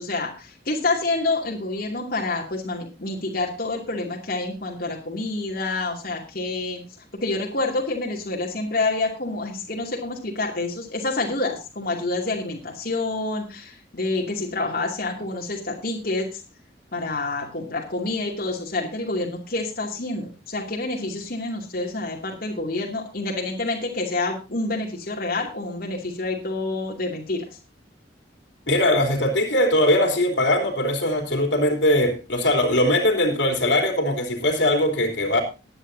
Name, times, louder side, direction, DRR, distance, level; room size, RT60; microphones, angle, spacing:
voice 1, 0.0-6.8 7.2-16.4 16.9-27.4, left 2 dB, 55° left, 2.6 m, -28 dB
voice 2, 28.7-35.4, left 1 dB, 85° left, 3.5 m, -21 dB
20.0 x 9.9 x 2.7 m
head